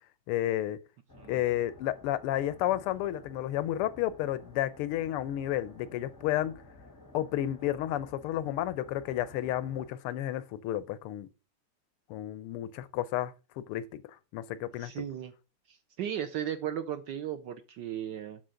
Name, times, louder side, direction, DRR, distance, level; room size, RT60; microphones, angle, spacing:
voice 1, 0.3-0.8 1.3-6.5 7.1-11.3 12.1-13.8 14.3-15.0, left 13 dB, 90° left, 1.6 m, -31 dB
sound 1, 1.1-9.9, left 2 dB, 15° left, 0.7 m, -53 dB
voice 2, 14.8-15.3 15.7-18.4, right 10 dB, 65° right, 1.3 m, -36 dB
7.6 x 6.2 x 5.7 m
omnidirectional pair, 2.4 m